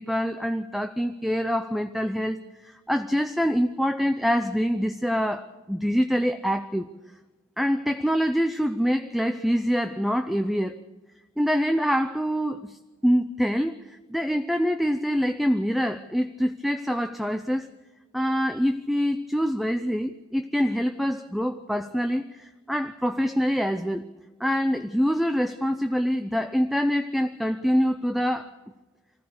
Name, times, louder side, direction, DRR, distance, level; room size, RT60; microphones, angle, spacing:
voice 1, 0.0-6.9 7.6-10.7 11.4-12.8 13.0-17.7 18.1-24.0 24.4-28.5, equal, ahead, 8 dB, 0.7 m, -25 dB
25.5 x 15.5 x 6.7 m, 1.2 s
head